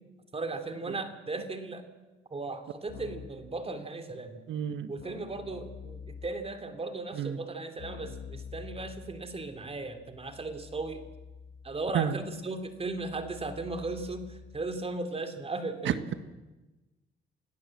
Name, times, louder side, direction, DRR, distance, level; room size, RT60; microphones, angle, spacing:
voice 1, 0.3-1.8 2.3-4.4 4.9-11.0 11.6-16.0, right 3 dB, 30° right, 8 dB, 2.8 m, -36 dB
Keyboard (musical), 2.9-3.5 5.0-6.6 7.8-14.8, left 6 dB, 75° left, 1.7 m, -47 dB
voice 2, 4.5-4.9 7.1-7.4 11.9-12.2 15.8-16.1, right 9 dB, 70° right, 11 dB, 1.6 m, -30 dB
27.5 x 17.5 x 7.7 m, 1.1 s
cardioid pair, 90°, 20 cm